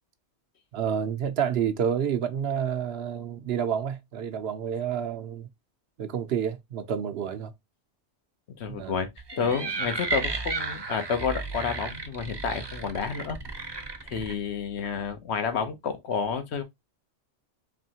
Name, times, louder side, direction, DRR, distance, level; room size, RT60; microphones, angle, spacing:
voice 1, 0.7-5.5 6.0-7.5 8.7-9.0 9.4-9.6 14.2-14.4, right 8 dB, 65° right, 0.8 m, -29 dB
voice 2, 8.6-13.4 13.7-13.8 14.1-16.6, left 6 dB, 70° left, 1.1 m, -30 dB
sound 1, 9.2-14.3, right 3 dB, 30° right, 0.6 m, -33 dB
4.2 x 3.0 x 2.8 m
omnidirectional pair, 1.2 m